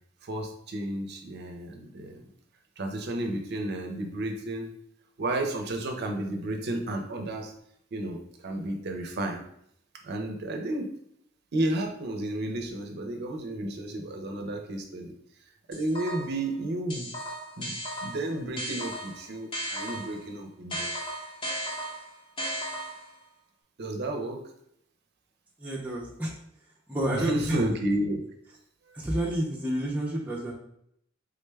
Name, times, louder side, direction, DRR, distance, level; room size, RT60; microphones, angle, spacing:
voice 1, 0.2-2.3 2.8-4.7 5.2-7.5 7.9-9.4 10.0-10.9 11.5-15.1 15.7-17.1 17.6-20.9 23.8-24.4 27.1-28.2 28.9-29.0, right 1 dB, 55° right, 3 dB, 0.5 m, -32 dB
sound 1, 15.7-16.4 16.9-20.2 20.7-23.2, equal, 25° left, 0.7 m, -35 dB
voice 2, 25.6-26.3 26.9-27.6 28.9-30.5, right 1 dB, 5° right, -5 dB, 0.5 m, -29 dB
3.6 x 2.2 x 3.3 m, 0.72 s
head